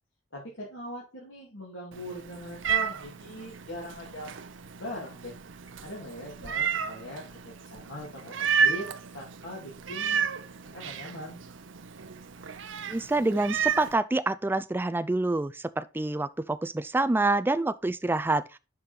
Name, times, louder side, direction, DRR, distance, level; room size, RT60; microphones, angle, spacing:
voice 1, 0.3-4.3 4.8-5.3 5.8-8.3 8.6-8.9 9.1-10.2 10.7-11.4, left 1 dB, 80° left, 2.7 m, -40 dB
Meow, 1.9-13.9, right 6 dB, 80° right, 0.7 m, -32 dB
voice 2, 12.9-18.4, right 2 dB, 10° right, 0.3 m, -27 dB
6.8 x 5.2 x 4.3 m
head